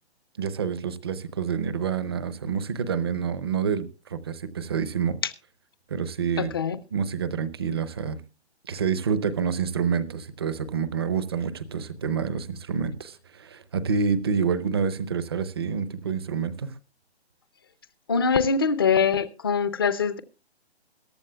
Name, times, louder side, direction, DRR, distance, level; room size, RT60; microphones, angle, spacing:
voice 1, 0.4-5.2 5.9-6.5 6.9-8.2 8.7-16.7, right 6 dB, 25° right, 0.7 m, -28 dB
voice 2, 6.4-6.8 18.1-20.2, left 5 dB, 20° left, 0.5 m, -23 dB
22.0 x 11.5 x 2.2 m
hypercardioid pair, 160°, 33 cm